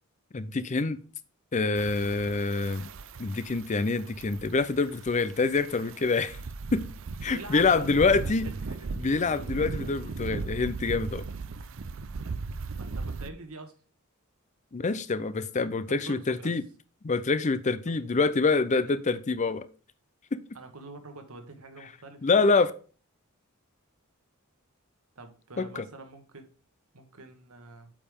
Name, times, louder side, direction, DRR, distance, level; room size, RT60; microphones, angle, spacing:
voice 1, 0.3-1.0 1.5-2.9 3.2-6.4 6.7-6.8 7.2-8.5 9.0-11.2 14.7-16.6 17.0-19.7 20.3-20.4 22.2-22.7 25.6-25.8, left 4 dB, 35° left, 0.5 m, -26 dB
sound 1, 1.8-13.3, right 4 dB, 65° right, 0.5 m, -38 dB
voice 2, 7.2-8.3 12.8-13.7 16.0-16.6 20.5-22.3 25.1-26.5 26.9-27.9, right 2 dB, 90° right, 1.5 m, -45 dB
8.5 x 5.2 x 3.6 m
head